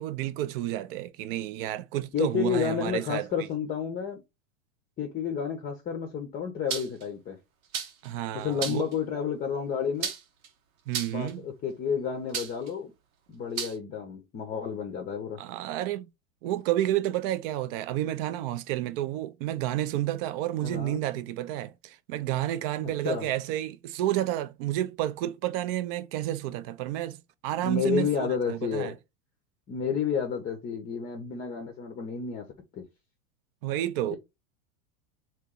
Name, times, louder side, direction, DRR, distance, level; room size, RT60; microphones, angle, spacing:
voice 1, 0.0-3.3 8.0-8.8 10.9-11.4 15.4-16.1 16.4-27.2 27.4-28.9 33.6-34.2, right 13 dB, 45° right, 0.4 m, -30 dB
voice 2, 2.1-4.2 5.0-7.4 8.3-10.1 11.1-12.9 13.3-15.4 20.6-21.0 22.8-23.3 27.6-28.9 29.7-32.9 34.1-34.2, left 7 dB, 20° left, 0.6 m, -31 dB
sound 1, 6.7-7.0 7.7-8.1 8.6-8.9 10.0-10.5 10.9-11.3 12.3-12.7 13.6-13.8, right 7 dB, 90° right, 1.1 m, -33 dB
3.0 x 2.9 x 3.7 m
supercardioid pair, 130°, 41 cm